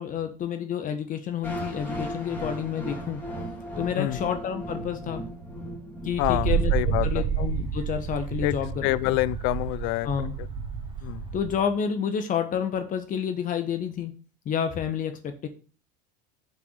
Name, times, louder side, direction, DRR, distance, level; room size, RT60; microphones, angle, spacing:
voice 1, 0.0-3.2 3.8-5.2 6.0-6.7 7.0-9.2 10.0-10.3 11.3-14.1 14.4-15.5, left 8 dB, 40° left, 1.2 m, -29 dB
sound 1, 1.4-7.4, equal, 10° left, 2.7 m, -36 dB
voice 2, 6.2-7.2 8.4-8.5 8.8-10.1 10.4-10.5 11.0-11.3, left 20 dB, 55° left, 0.5 m, -27 dB
Wind, 6.2-11.7, right 7 dB, 25° right, 2.8 m, -29 dB
5.4 x 5.2 x 6.6 m
hypercardioid pair, 90°, 21 cm